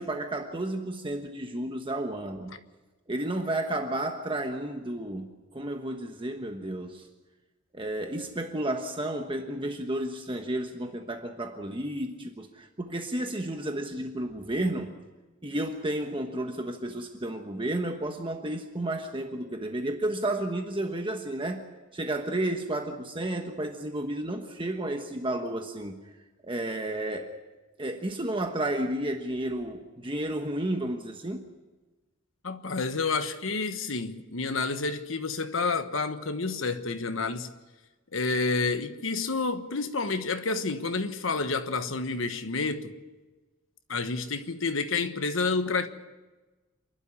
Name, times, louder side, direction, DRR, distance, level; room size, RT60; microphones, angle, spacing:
voice 1, 0.0-2.5 3.1-7.1 7.7-15.0 15.4-21.7 21.9-26.0 26.4-27.3 27.8-31.5, right 1 dB, 25° right, 1.2 m, -32 dB
voice 2, 32.4-37.5 38.1-43.0 43.9-45.9, left 4 dB, 90° left, 1.3 m, -29 dB
27.5 x 12.0 x 9.8 m
head